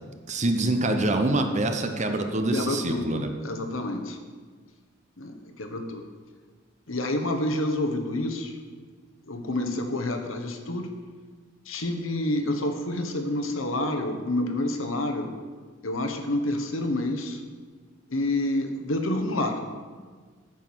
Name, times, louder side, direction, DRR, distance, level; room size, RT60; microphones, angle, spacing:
voice 1, 0.3-3.3, right 2 dB, 35° right, 5 dB, 0.9 m, -25 dB
voice 2, 2.5-4.2 5.2-6.0 6.9-8.6 9.2-10.9 11.6-15.3 15.8-17.4 18.1-19.6, left 1 dB, 75° left, 6 dB, 1.2 m, -28 dB
9.3 x 7.2 x 6.2 m, 1.5 s
head